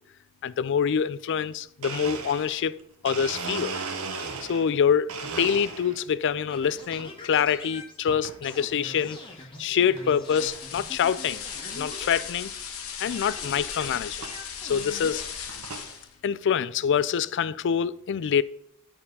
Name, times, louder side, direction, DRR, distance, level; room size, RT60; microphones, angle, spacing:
voice 1, 0.4-2.8 3.0-3.8 4.1-9.2 9.6-11.4 11.8-12.5 13.0-14.2 14.6-15.6 16.2-18.4, left 7 dB, 55° left, 0.4 m, -26 dB
Domestic sounds home sounds, 1.8-4.8 5.1-6.1 6.6-7.1 8.1-8.4 9.0-9.1 10.0-10.1 10.3-10.6 11.1-11.2 11.4-11.5 11.9-12.0 13.3-13.4 14.2-14.4 15.0-15.9, right 4 dB, 85° right, 1.2 m, -36 dB
sound 1, 6.5-12.8 13.1-15.3, left 2 dB, 25° left, 1.8 m, -44 dB
sound 2, 10.2-16.1, left 7 dB, 70° left, 1.2 m, -37 dB
11.0 x 4.4 x 5.3 m
head